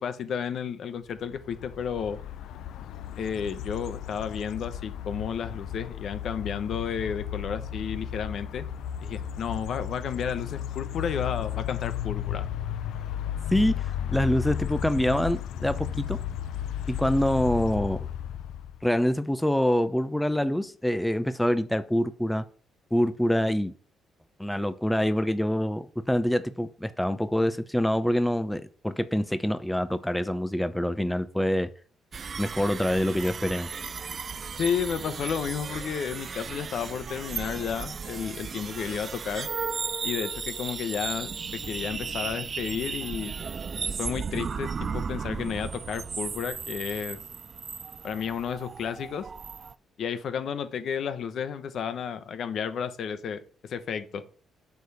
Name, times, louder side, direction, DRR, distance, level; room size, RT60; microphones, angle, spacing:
voice 1, 0.0-2.2 3.2-8.6 9.0-12.5 34.6-39.5 40.0-43.3 44.0-47.2 48.0-49.3 50.0-54.2, left 7 dB, 65° left, 1.0 m, -32 dB
sound 1, 1.3-18.9, left 10 dB, 80° left, 0.6 m, -34 dB
voice 2, 13.5-16.2 16.9-18.1 18.8-22.4 22.9-23.7 24.4-31.7 32.4-33.7, equal, 5° left, 0.7 m, -26 dB
sound 2, 32.1-49.7, right 5 dB, 40° right, 0.4 m, -35 dB
8.1 x 4.9 x 6.9 m
cardioid pair, 90°, 0 cm